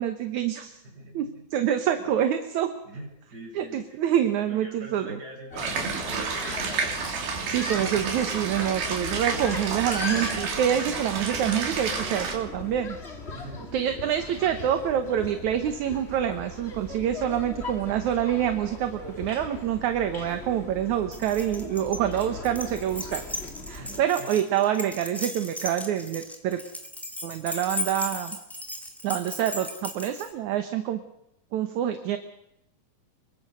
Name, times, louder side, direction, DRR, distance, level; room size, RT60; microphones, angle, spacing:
voice 1, 0.0-0.8 1.1-2.7 3.6-5.2 7.2-13.0 13.7-23.2 23.7-26.6 27.2-28.4 29.0-31.0 31.5-32.2, right 10 dB, 65° right, 8 dB, 2.4 m, -26 dB
voice 2, 0.8-1.4 2.0-2.1 2.8-4.0 4.5-6.9 13.3-14.2 23.8-24.3, right 1 dB, 25° right, -2 dB, 8.2 m, -44 dB
sound 1, 5.5-24.0, left 3 dB, 20° left, 1.9 m, -39 dB
sound 2, 5.6-12.4, right 5 dB, 80° right, 4.8 m, -30 dB
Keys jangling, 21.1-30.3, left 1 dB, ahead, 1.9 m, -36 dB
25.5 x 23.0 x 6.4 m, 0.80 s
omnidirectional pair, 4.2 m